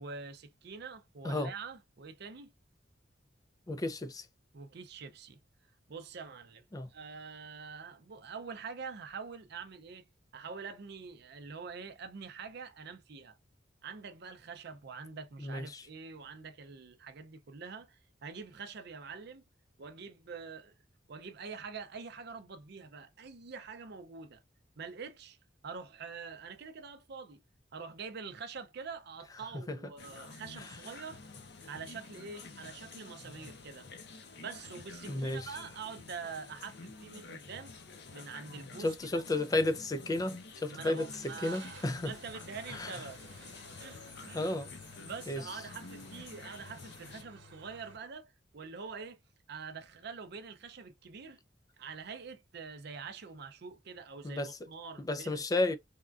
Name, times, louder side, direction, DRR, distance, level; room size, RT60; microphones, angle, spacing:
voice 1, 0.0-2.5 4.5-5.4 5.9-6.6 6.9-10.1 10.3-13.4 13.8-19.4 19.8-20.7 21.1-24.4 24.8-25.4 25.6-27.4 27.7-31.2 31.6-33.9 34.4-37.7 38.1-39.3 40.6-43.5 43.8-44.6 45.0-49.2 49.5-51.4 51.8-55.5, right 5 dB, 60° right, 0.6 m, -45 dB
voice 2, 3.7-4.2 6.7-6.9 15.4-15.8 29.5-29.8 35.1-35.5 38.8-41.1 41.4-42.1 42.7-42.9 44.3-44.7 45.3-45.4 54.2-54.5 55.0-55.8, left 2 dB, 20° left, 0.4 m, -32 dB
sound 1, 30.0-47.2, left 4 dB, 65° left, 0.7 m, -50 dB
Car / Engine starting, 41.1-48.0, right 1 dB, 90° right, 0.9 m, -55 dB
3.5 x 2.2 x 2.4 m
head